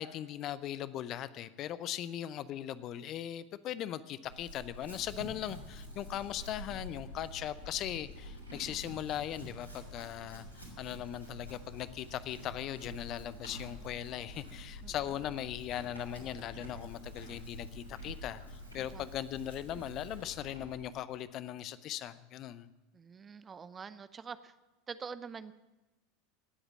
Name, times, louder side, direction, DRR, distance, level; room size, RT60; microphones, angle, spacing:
voice 1, 0.0-22.7, left 11 dB, 40° left, 17 dB, 0.6 m, -39 dB
Chewing mastication / Livestock farm animals working animals, 4.2-20.8, equal, 85° left, 3.3 m, -47 dB
voice 2, 22.9-24.5 24.9-25.5, right 6 dB, 25° right, 14 dB, 0.6 m, -45 dB
18.5 x 8.0 x 7.2 m, 1.1 s
figure-of-eight pair, 80°, 0 cm